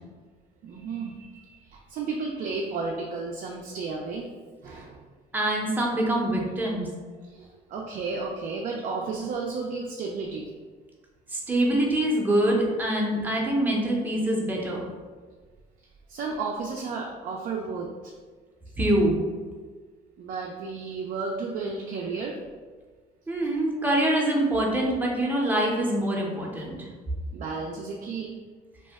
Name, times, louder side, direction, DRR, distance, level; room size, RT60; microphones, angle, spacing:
voice 1, 0.6-4.3 4.6-5.1 7.3-10.5 16.1-18.1 20.2-22.4 27.3-28.4, right 4 dB, 55° right, -1 dB, 0.4 m, -33 dB
voice 2, 5.3-6.9 11.3-14.8 18.8-19.2 23.3-26.9, right 1 dB, 10° right, -2 dB, 0.6 m, -24 dB
2.7 x 2.1 x 3.3 m, 1.5 s
cardioid pair, 110°, 17 cm